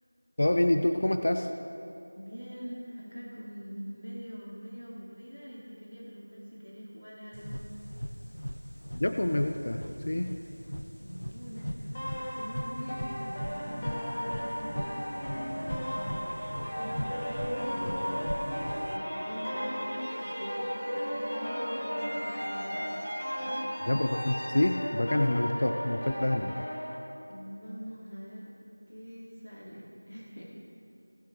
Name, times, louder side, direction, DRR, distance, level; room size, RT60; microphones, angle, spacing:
voice 1, 0.4-1.5 8.9-10.4 23.9-26.7, left 1 dB, 35° left, 6 dB, 0.4 m, -27 dB
voice 2, 2.1-7.6 10.4-10.5 11.0-18.6 18.9-22.9 23.4-23.7 27.3-28.5 28.9-30.4, equal, 65° left, -6 dB, 2.7 m, -44 dB
sound 1, 7.3-19.0, equal, 85° left, 0.7 m, -39 dB
sound 2, 11.9-27.0, equal, 15° left, 1.2 m, -36 dB
sound 3, 15.0-26.1, equal, 20° right, 2.6 m, -39 dB
18.0 x 8.2 x 3.4 m, 2.8 s
figure-of-eight pair, 175°, 0 cm